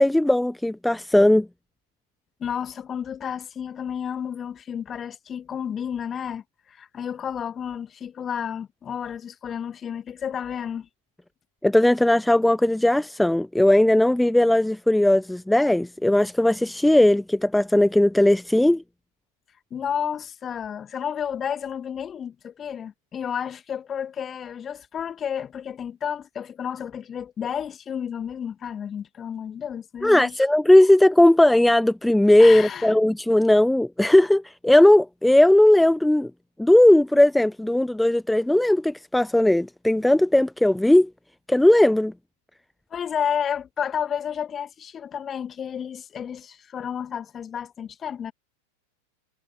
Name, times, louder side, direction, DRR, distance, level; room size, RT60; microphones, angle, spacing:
voice 1, 0.0-1.5 11.6-18.8 30.0-36.3 36.6-41.1 41.5-42.1, left 1 dB, 5° left, 1.0 m, -18 dB
voice 2, 2.4-10.9 19.7-30.4 32.4-32.9 42.9-48.3, left 8 dB, 25° left, 2.3 m, -31 dB
figure-of-eight pair, 90°, 0 cm